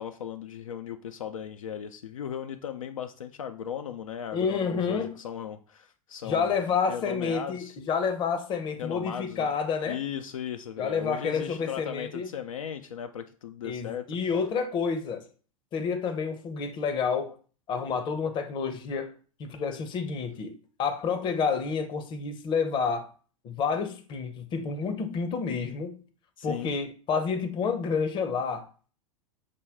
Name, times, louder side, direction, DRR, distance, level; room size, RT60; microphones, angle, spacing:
voice 1, 0.0-7.8 8.8-9.5 9.8-14.1 26.4-26.7, left 9 dB, 70° left, 0.4 m, -37 dB
voice 2, 4.3-5.2 6.2-10.0 10.8-12.3 13.6-15.3 15.7-17.3 17.7-19.1 19.4-23.1 23.4-26.0 26.4-28.7, left 5 dB, 25° left, 0.7 m, -29 dB
6.6 x 2.2 x 3.5 m
figure-of-eight pair, 90°, 18 cm